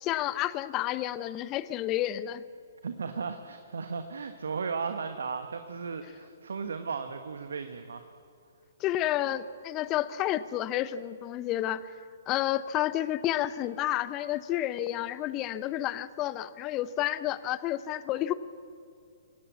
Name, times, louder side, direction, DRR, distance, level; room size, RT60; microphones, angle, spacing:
voice 1, 0.0-2.4 8.8-11.8 12.3-18.3, left 13 dB, 25° left, 16 dB, 0.8 m, -30 dB
voice 2, 2.8-8.1, right 5 dB, 65° right, 8 dB, 1.3 m, -35 dB
26.0 x 17.0 x 8.3 m, 2.5 s
figure-of-eight pair, 120°, 0 cm